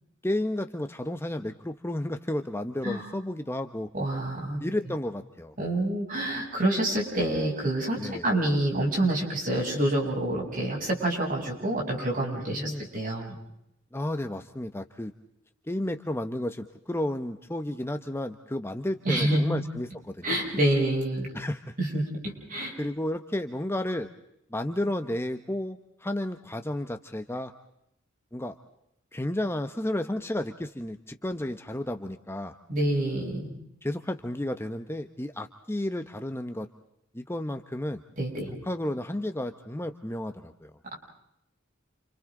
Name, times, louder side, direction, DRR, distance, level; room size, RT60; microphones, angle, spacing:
voice 1, 0.2-3.9 4.6-5.6 7.9-8.3 12.5-12.8 13.9-15.1 15.7-20.3 21.3-21.6 22.8-24.1 24.5-27.5 28.3-28.5 29.1-32.5 33.8-36.7 37.1-38.0 38.6-40.7, left 1 dB, 10° left, 7 dB, 0.9 m, -32 dB
voice 2, 3.9-4.6 5.6-13.3 19.0-19.6 20.2-21.3 21.8-22.7 32.7-33.5 38.2-38.5, right 1 dB, 45° right, -1 dB, 8.0 m, -27 dB
30.0 x 28.5 x 3.9 m, 0.79 s
head